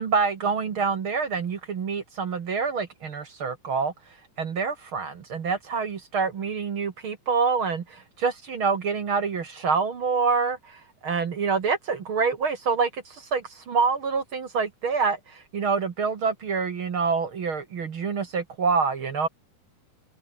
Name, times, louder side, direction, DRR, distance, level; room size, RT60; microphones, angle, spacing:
voice 1, 0.0-3.9 4.4-19.3, right 5 dB, 45° right, 1.8 m, -26 dB
omnidirectional pair, 4.3 m